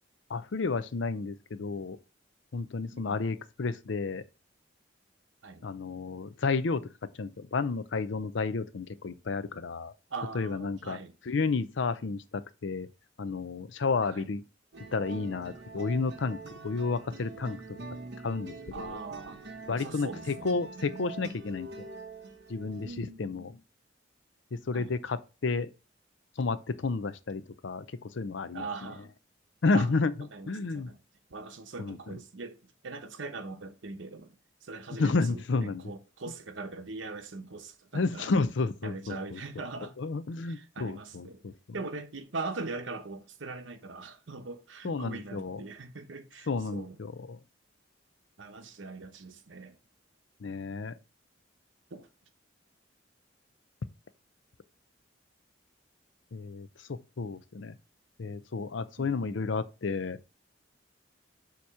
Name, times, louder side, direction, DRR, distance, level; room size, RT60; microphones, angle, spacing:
voice 1, 0.3-2.0 2.5-4.2 5.6-6.8 7.2-9.9 10.3-11.0 11.3-12.9 13.2-14.4 14.9-16.4 16.6-17.8 18.2-19.0 19.7-21.9 22.5-23.5 24.5-25.7 26.4-28.7 29.6-30.1 30.5-30.9 31.8-32.0 35.0-35.8 37.9-39.4 40.0-41.5 44.8-45.6 46.5-47.4 50.4-50.9 56.3-57.8 58.2-60.2, left 4 dB, 75° left, 0.5 m, -31 dB
voice 2, 2.9-3.2 5.4-5.7 10.1-11.2 14.0-14.3 18.7-19.4 19.7-20.7 22.8-23.5 24.7-25.0 28.5-29.1 29.7-29.9 30.3-31.0 31.3-38.3 38.8-40.0 40.4-41.4 41.7-47.0 48.4-49.8 51.9-52.1 59.0-59.4, right 3 dB, 85° right, 0.9 m, -41 dB
sound 1, 14.7-22.9, right 3 dB, 60° right, 1.1 m, -44 dB
7.0 x 3.0 x 4.8 m
head